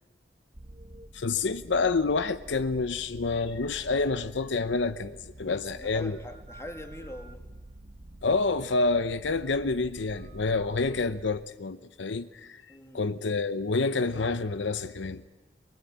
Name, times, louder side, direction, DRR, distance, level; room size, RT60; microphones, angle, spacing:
sound 1, 0.5-11.2, right 1 dB, 40° right, 1.3 m, -48 dB
voice 1, 1.1-6.2 8.2-12.6 12.9-15.3, left 3 dB, 75° left, 0.8 m, -28 dB
voice 2, 5.8-7.5 12.7-13.1, left 1 dB, 15° left, 2.0 m, -43 dB
23.5 x 21.0 x 8.8 m
head